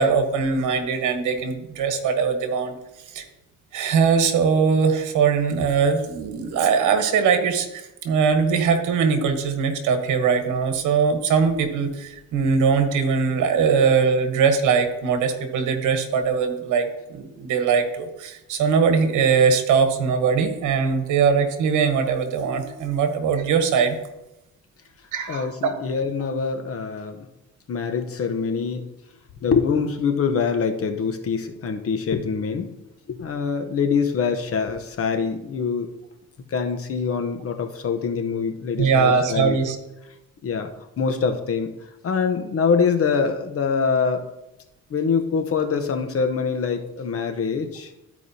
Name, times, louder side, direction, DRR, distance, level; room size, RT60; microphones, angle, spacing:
voice 1, 0.0-2.7 3.1-3.3 3.7-24.0 25.1-25.7 38.8-39.8, right 6 dB, 80° right, 7 dB, 1.2 m, -21 dB
voice 2, 25.3-27.2 27.7-28.8 29.4-32.7 33.1-35.9 36.5-39.6 40.4-40.7 41.0-41.7 42.0-44.3 44.9-47.9, left 5 dB, 50° left, 6 dB, 0.9 m, -24 dB
13.5 x 4.7 x 2.7 m, 0.92 s
cardioid pair, 90°, 30 cm